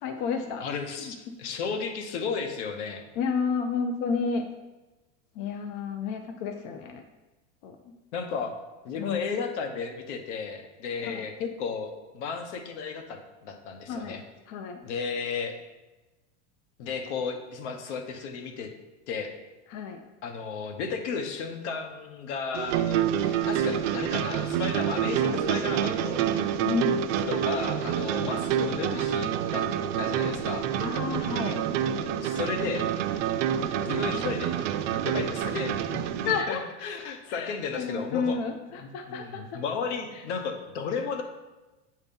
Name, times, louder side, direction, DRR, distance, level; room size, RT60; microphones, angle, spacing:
voice 1, 0.0-0.6 1.0-1.3 3.2-4.4 5.3-7.0 7.6-7.9 9.0-9.2 11.0-11.2 13.9-14.2 14.5-14.8 19.7-20.0 26.6-27.1 28.2-28.4 30.8-31.6 36.3-36.6 37.3-39.6 40.1-40.2, left 5 dB, 40° left, 5 dB, 0.5 m, -31 dB
voice 2, 0.6-3.0 8.1-8.5 8.8-14.2 14.8-15.5 16.8-18.7 19.1-19.3 20.2-26.2 27.3-29.7 30.0-30.7 32.2-32.8 33.8-38.4 38.8-41.2, left 5 dB, 70° left, 5 dB, 1.0 m, -34 dB
sound 1, 22.5-36.4, right 9 dB, 80° right, 0.6 m, -27 dB
8.0 x 2.8 x 5.3 m, 1.1 s
supercardioid pair, 160°, 36 cm